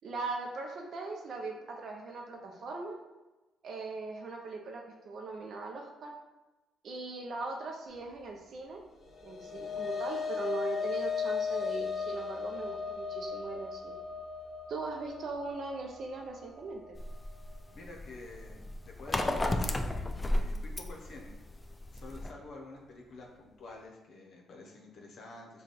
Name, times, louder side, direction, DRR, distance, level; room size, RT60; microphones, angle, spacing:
voice 1, 0.0-3.0 3.6-6.1 6.8-8.8 9.2-14.0 14.7-17.0, right 3 dB, 60° right, 1 dB, 0.5 m, -39 dB
sound 1, 9.0-17.5, left 6 dB, 35° left, 0.9 m, -37 dB
sound 2, 17.0-22.3, left 1 dB, 20° left, 0.3 m, -33 dB
voice 2, 17.7-19.9 20.3-21.4 21.9-25.6, left 2 dB, 65° left, 0 dB, 0.8 m, -49 dB
3.3 x 2.3 x 4.0 m, 1.1 s
cardioid pair, 90°, 0 cm